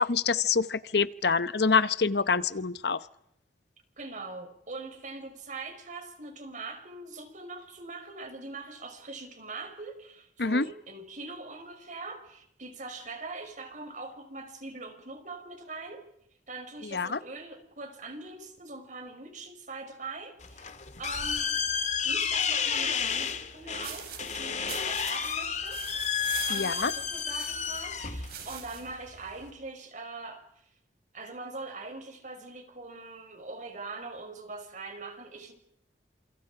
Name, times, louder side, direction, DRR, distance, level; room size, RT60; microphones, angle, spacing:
voice 1, 0.0-3.0 10.4-10.6 16.9-17.2 26.5-26.9, left 5 dB, 65° left, 14 dB, 0.9 m, -26 dB
voice 2, 4.0-16.1 16.5-20.7 21.0-21.6 22.0-25.8 26.5-30.4 31.1-35.5, right 3 dB, 45° right, 6 dB, 5.3 m, -42 dB
sound 1, 20.4-29.5, left 7 dB, 40° left, 2.3 m, -31 dB
sound 2, 23.8-28.9, right 8 dB, 60° right, 5.9 m, -43 dB
30.0 x 28.0 x 4.9 m, 0.76 s
head